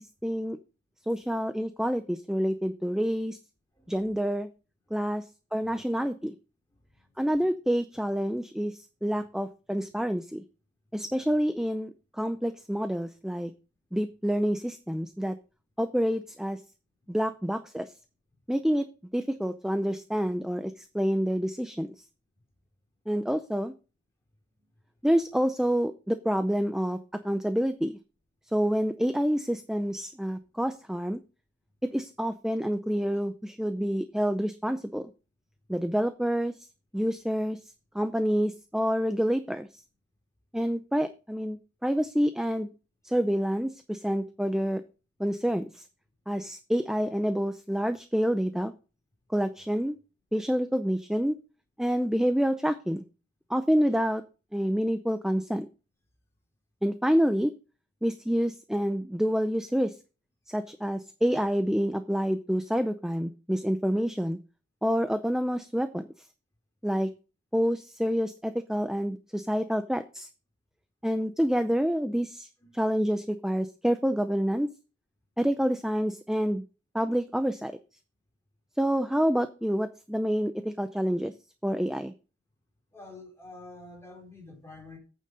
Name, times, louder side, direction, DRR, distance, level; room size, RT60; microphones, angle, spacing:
voice 1, 0.2-0.6 1.1-3.4 3.9-4.5 4.9-5.2 5.5-6.3 7.2-10.4 10.9-11.9 12.2-13.5 13.9-15.4 15.8-16.6 17.1-17.9 18.5-18.9 19.1-21.9 23.1-23.7 25.0-27.0 27.2-28.0 28.5-31.2 31.8-35.1 35.7-36.5 36.9-37.6 37.9-39.7 40.5-42.7 43.0-44.8 45.2-45.8 46.3-48.7 49.3-50.0 50.3-51.3 51.8-53.0 53.5-54.2 54.5-55.7 56.8-57.5 58.0-59.9 60.5-64.4 64.8-66.0 66.8-67.1 67.5-70.3 71.0-72.5 72.7-74.7 75.4-76.6 76.9-77.7 78.8-81.3 81.6-82.1, equal, 5° right, 0.5 m, -27 dB
voice 2, 3.7-4.2 4.9-5.2 5.6-5.8 6.7-7.5 72.6-72.8 82.9-85.0, left 2 dB, 15° left, 4.2 m, -49 dB
9.0 x 6.6 x 5.1 m
head